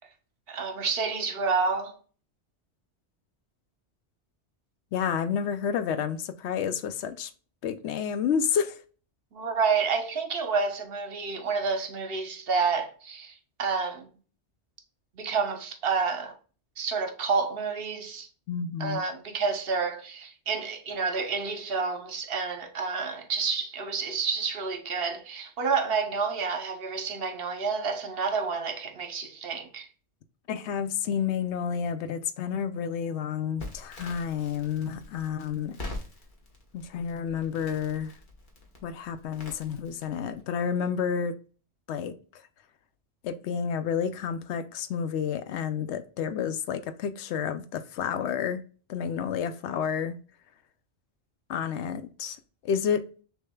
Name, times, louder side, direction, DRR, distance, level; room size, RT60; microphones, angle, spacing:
voice 1, 0.5-2.0 9.3-14.1 15.2-16.3 16.8-18.3 18.8-29.9, right 5 dB, 60° right, 1.0 m, -29 dB
voice 2, 4.9-7.3 7.6-8.8 18.5-19.0 30.5-35.8 36.7-38.1 38.8-41.3 41.9-42.4 43.2-48.6 48.9-50.2 51.5-52.4 52.6-53.0, left 7 dB, 80° left, 0.8 m, -30 dB
Crackle, 33.6-40.4, left 2 dB, 45° left, 1.3 m, -44 dB
6.3 x 3.1 x 2.2 m
omnidirectional pair, 1.2 m